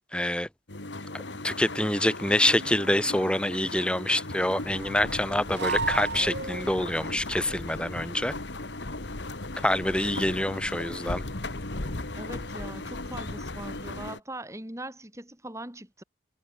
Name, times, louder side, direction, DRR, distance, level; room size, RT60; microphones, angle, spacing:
voice 1, 0.1-0.5 1.1-8.3 9.6-11.2, left 1 dB, 5° left, 2.3 m, -26 dB
sound 1, 0.7-14.2, left 2 dB, 80° left, 2.7 m, -38 dB
sound 2, 2.3-3.3 5.5-7.0, right 4 dB, 70° right, 1.8 m, -34 dB
sound 3, 4.6-14.1, left 1 dB, 60° left, 1.4 m, -40 dB
voice 2, 12.1-16.0, right 1 dB, 15° right, 7.7 m, -41 dB
head